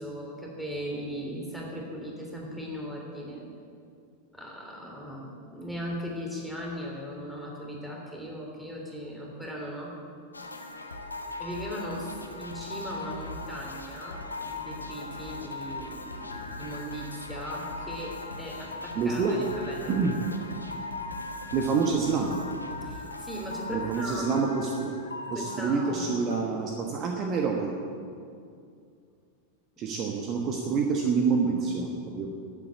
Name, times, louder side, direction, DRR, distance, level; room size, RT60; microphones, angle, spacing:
voice 1, 0.0-3.5 4.3-10.0 11.4-20.0 22.8-24.4 25.3-26.0, equal, ahead, -2 dB, 3.3 m, -38 dB
sound 1, 10.3-26.5, left 3 dB, 80° left, 1.1 m, -39 dB
voice 2, 18.9-19.5 19.9-20.1 21.5-22.3 23.7-24.9 25.3-27.7 29.8-32.3, right 5 dB, 35° right, 1 dB, 1.3 m, -27 dB
12.5 x 8.6 x 8.4 m, 2.4 s
figure-of-eight pair, 90°, 0 cm